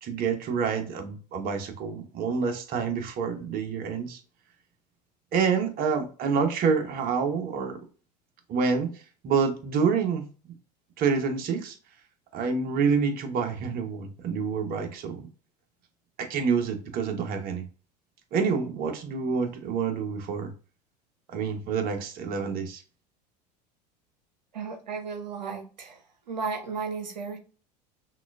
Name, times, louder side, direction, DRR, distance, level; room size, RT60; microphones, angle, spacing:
voice 1, 0.0-4.2 5.3-7.8 8.5-8.9 9.2-10.3 11.0-11.7 12.3-15.2 16.2-17.6 18.3-20.5 21.3-22.8, right 5 dB, 45° right, 1.0 m, -27 dB
voice 2, 24.5-26.0 26.3-27.4, right 5 dB, 90° right, 0.7 m, -34 dB
5.9 x 2.4 x 2.4 m
hypercardioid pair, 80°, 21 cm